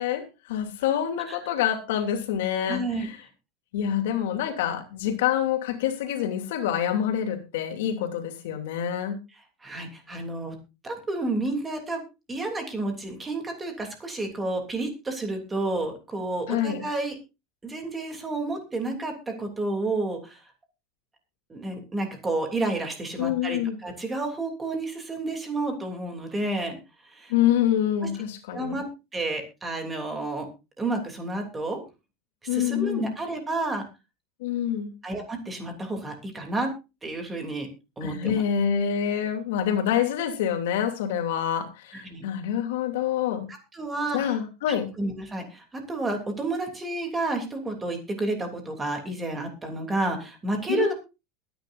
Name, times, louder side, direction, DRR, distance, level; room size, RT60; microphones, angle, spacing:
voice 1, 0.0-3.2 3.7-9.2 16.5-16.8 23.2-23.8 27.3-28.8 32.5-33.1 34.4-34.9 38.0-43.5 44.1-44.9 50.7-50.9, left 9 dB, 85° left, 5 dB, 2.9 m, -26 dB
voice 2, 2.7-3.1 9.6-10.5 10.8-12.0 12.3-17.2 17.6-20.4 21.5-26.8 27.0-27.3 28.0-28.1 28.5-28.8 29.1-30.5 30.8-31.8 32.5-33.8 35.0-36.7 37.0-37.7 38.0-38.4 41.9-42.2 43.5-44.2 45.0-50.9, right 2 dB, 10° right, 4 dB, 3.1 m, -30 dB
22.0 x 10.0 x 2.7 m, 0.28 s
supercardioid pair, 170°, 0 cm